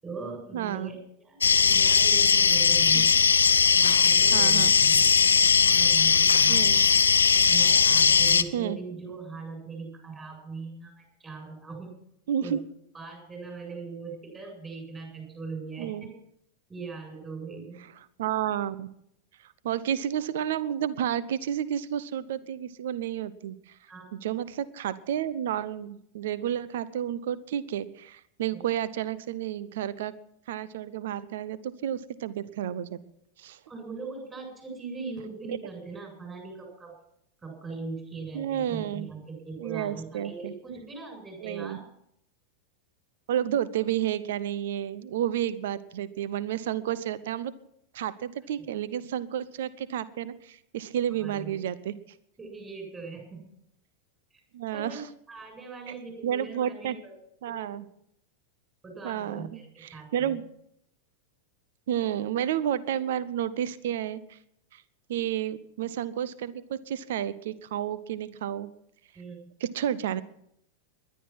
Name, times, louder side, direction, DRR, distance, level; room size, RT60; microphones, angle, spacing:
voice 1, 0.0-3.2 3.7-5.1 5.6-6.7 7.4-12.0 12.4-12.6 12.9-16.1 16.7-17.8 23.9-24.1 28.5-28.6 33.7-36.9 37.4-41.8 48.6-48.7 51.2-51.6 52.4-53.4 54.7-57.2 57.5-57.8 58.8-60.4 69.1-69.5, right 4 dB, 15° right, 2 dB, 7.8 m, -40 dB
voice 2, 0.5-0.9 2.9-3.1 4.3-4.7 6.5-6.8 8.5-8.8 12.3-12.6 15.8-16.1 18.2-18.9 19.6-23.7 24.2-30.1 30.5-33.0 33.4-33.6 35.5-35.6 38.3-39.1 39.6-40.5 41.4-41.8 43.3-47.5 47.9-51.9 54.5-55.0 55.9-56.0 56.2-57.0 57.4-57.9 59.0-60.4 61.9-64.4 64.7-64.8 65.1-68.7 69.6-70.2, right 10 dB, 55° right, 18 dB, 0.8 m, -31 dB
sound 1, 1.4-8.4, left 6 dB, 70° left, 0.8 m, -19 dB
20.5 x 11.5 x 6.0 m, 0.74 s
figure-of-eight pair, 90°, 0 cm